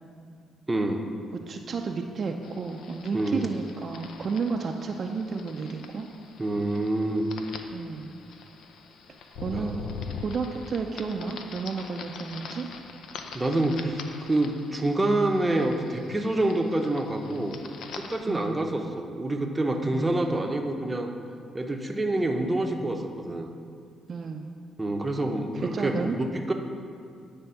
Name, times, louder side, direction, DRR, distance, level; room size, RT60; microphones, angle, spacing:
voice 1, 0.7-1.0 3.1-3.5 6.4-7.3 9.5-9.8 13.3-14.0 14.3-17.5 17.9-21.1 21.5-23.5 24.8-26.5, right 1 dB, 15° right, 3 dB, 0.7 m, -27 dB
voice 2, 1.3-6.1 7.7-8.2 9.4-9.8 10.2-12.7 18.3-18.6 19.9-20.5 24.1-24.5 25.5-26.2, right 5 dB, 50° right, 3 dB, 0.4 m, -32 dB
sound 1, 2.4-18.2, left 5 dB, 75° left, 0.5 m, -43 dB
9.1 x 3.4 x 5.6 m, 2.3 s
cardioid pair, 90°, 0 cm